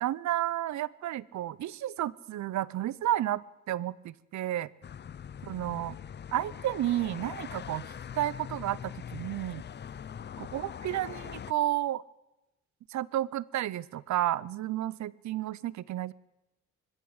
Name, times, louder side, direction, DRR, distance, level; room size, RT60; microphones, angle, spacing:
voice 1, 0.0-3.4 3.7-4.7 5.4-6.0 6.3-9.6 10.4-12.0 12.9-16.1, right 13 dB, 70° right, 22 dB, 0.8 m, -32 dB
sound 1, 4.8-11.5, left 8 dB, 35° left, 0.6 m, -42 dB
20.5 x 15.5 x 8.0 m, 0.96 s
cardioid pair, 90°, 30 cm